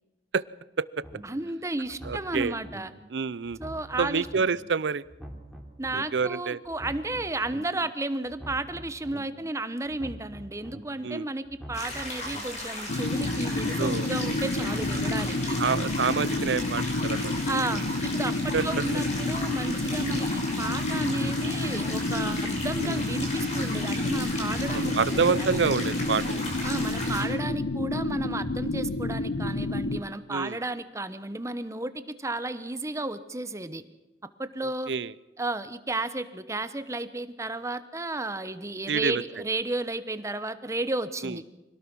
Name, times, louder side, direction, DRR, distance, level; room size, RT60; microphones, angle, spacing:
sound 1, 1.0-1.2 1.8-2.8 3.4-4.4 5.0-6.0 6.6-7.6 8.2-9.2 9.8-10.8 11.4-12.4 13.0-14.0 14.6-15.3, equal, ahead, 3.5 m, -44 dB
voice 1, 1.2-2.9 3.6-4.3 5.8-15.6 17.5-25.5 26.6-33.8 34.4-34.9 35.4-41.4, right 2 dB, 15° right, 12 dB, 1.0 m, -33 dB
voice 2, 2.0-2.5 3.1-3.6 4.0-5.0 5.9-6.6 11.0-11.3 13.8-14.1 15.6-17.3 18.5-18.6 22.8-23.0 24.7-26.5 30.3-30.6 34.6-35.1 38.9-39.2 41.2-41.4, right 5 dB, 85° right, 20 dB, 0.6 m, -27 dB
sound 2, 11.7-27.2, left 1 dB, 40° left, 5.6 m, -36 dB
sound 3, 12.9-30.0, left 2 dB, 75° left, 0.9 m, -29 dB
25.0 x 18.0 x 6.2 m, 1.0 s
head